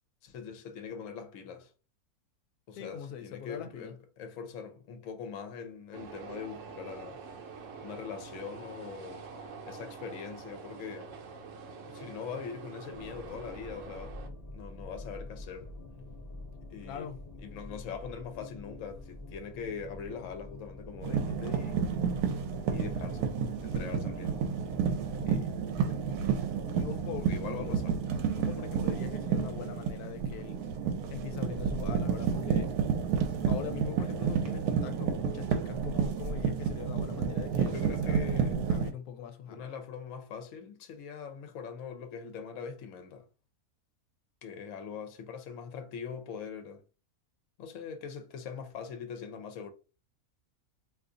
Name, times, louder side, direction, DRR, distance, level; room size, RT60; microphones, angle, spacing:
voice 1, 0.2-1.7 2.7-7.2 7.8-9.2 9.6-11.1 11.9-15.7 16.7-17.1 17.4-21.9 22.6-23.3 23.6-24.4 25.2-25.6 25.9-26.2 27.2-27.9 37.6-38.6 39.5-43.2 44.4-46.8 47.6-49.7, left 6 dB, 65° left, 1.0 m, -42 dB
voice 2, 2.8-3.9 16.8-17.2 26.7-27.3 27.6-27.7 28.4-30.6 31.1-32.7 33.5-38.2 38.7-39.6, left 8 dB, 85° left, 1.1 m, -42 dB
sound 1, 5.9-14.3, right 5 dB, 65° right, 0.9 m, -46 dB
sound 2, 12.9-28.6, left 2 dB, 40° left, 0.5 m, -47 dB
sound 3, 21.0-38.9, right 6 dB, 85° right, 1.1 m, -30 dB
2.7 x 2.5 x 3.7 m
omnidirectional pair, 1.6 m